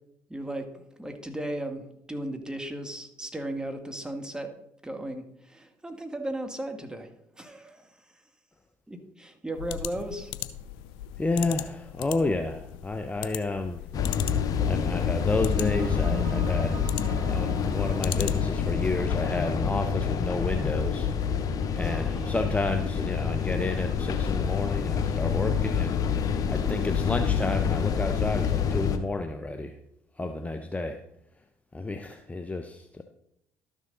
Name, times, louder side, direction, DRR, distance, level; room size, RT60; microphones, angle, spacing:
voice 1, 0.3-4.5 4.8-7.1 7.4-8.2 8.9-10.3 21.8-22.4, right 1 dB, 10° right, 5 dB, 1.8 m, -36 dB
sound 1, 9.5-18.7, left 12 dB, 70° left, 0.5 m, -40 dB
voice 2, 11.2-13.8 14.7-16.9 17.3-21.1 21.7-26.0 26.5-29.8 30.2-31.0 31.7-33.0, left 2 dB, 15° left, 7 dB, 0.8 m, -30 dB
sound 2, 13.9-29.0, left 7 dB, 50° left, 1.0 m, -27 dB
sound 3, 15.0-25.9, right 5 dB, 50° right, 1.4 m, -44 dB
12.5 x 6.4 x 3.9 m, 0.75 s
hypercardioid pair, 55°, 8 cm